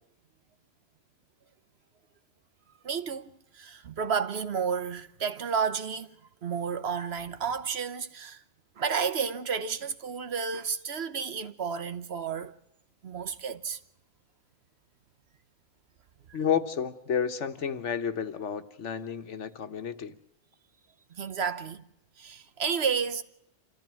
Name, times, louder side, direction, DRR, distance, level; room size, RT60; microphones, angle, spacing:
voice 1, 2.8-6.2 6.4-8.4 8.8-12.5 13.0-13.8 21.1-21.8 22.2-23.2, right 6 dB, 65° right, 1.2 m, -31 dB
voice 2, 16.3-20.2, left 7 dB, 80° left, 1.5 m, -31 dB
27.5 x 14.0 x 7.6 m
omnidirectional pair, 1.2 m